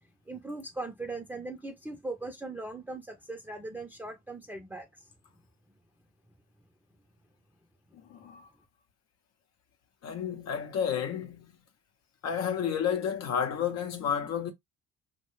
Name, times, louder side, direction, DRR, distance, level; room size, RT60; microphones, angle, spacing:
voice 1, 0.3-5.1, right 2 dB, 5° right, 0.6 m, -39 dB
voice 2, 8.1-8.5 10.0-11.5 12.2-14.5, left 8 dB, 60° left, 0.7 m, -31 dB
2.6 x 2.2 x 3.0 m
supercardioid pair, 80°, 30 cm